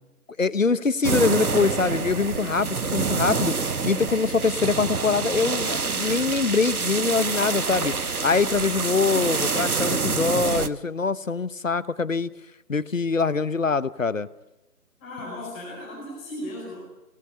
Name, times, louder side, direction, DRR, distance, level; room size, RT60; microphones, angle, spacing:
voice 1, 0.4-3.6 3.8-12.3 12.7-14.3, left 4 dB, 55° left, 16 dB, 1.0 m, -24 dB
sound 1, 1.0-10.7, right 4 dB, 70° right, 1.3 m, -27 dB
voice 2, 15.0-16.8, left 1 dB, 10° left, -4 dB, 5.0 m, -36 dB
25.0 x 19.0 x 8.8 m, 1.0 s
figure-of-eight pair, 170°, 46 cm